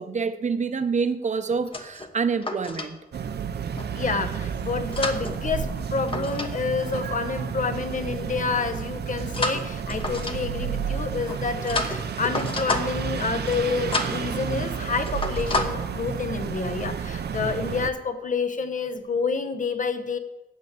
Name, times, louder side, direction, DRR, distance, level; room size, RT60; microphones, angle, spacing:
voice 1, 0.0-3.0, right 5 dB, 45° right, 0.7 m, -27 dB
sound 1, 1.5-2.9 3.8-4.2 4.7-6.5 6.8-7.0 9.3-10.6 11.3-13.1 13.4-13.6 13.9-14.2 14.6-14.8 15.1-15.6, left 2 dB, 30° left, 1.0 m, -30 dB
sound 2, 3.1-17.9, right 7 dB, 85° right, 0.6 m, -31 dB
voice 2, 3.9-20.2, left 4 dB, 50° left, 0.9 m, -28 dB
7.9 x 7.7 x 7.9 m
wide cardioid pair, 145°, 17 cm